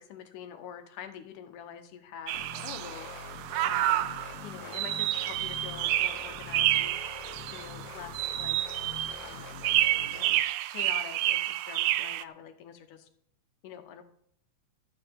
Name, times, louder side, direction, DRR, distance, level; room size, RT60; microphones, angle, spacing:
voice 1, 0.0-3.1 3.6-4.1 4.4-7.0 7.5-8.6 9.2-9.6 10.1-13.1 13.6-14.0, left 9 dB, 75° left, 8 dB, 2.3 m, -45 dB
sound 1, 2.3-10.3, left 5 dB, 55° left, 2.1 m, -45 dB
sound 2, 2.3-12.2, right 14 dB, 80° right, 2.2 m, -29 dB
12.5 x 8.8 x 5.2 m, 0.69 s
omnidirectional pair, 4.0 m